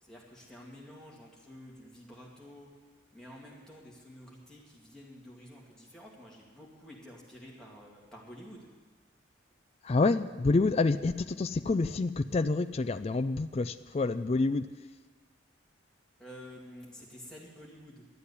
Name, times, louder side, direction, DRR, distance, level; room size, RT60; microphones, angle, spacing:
voice 1, 0.0-2.8 3.1-8.7 16.2-18.1, equal, 5° left, -4 dB, 2.4 m, -50 dB
voice 2, 9.8-14.7, left 3 dB, 30° left, 10 dB, 0.3 m, -28 dB
12.0 x 8.4 x 9.9 m, 1.4 s
head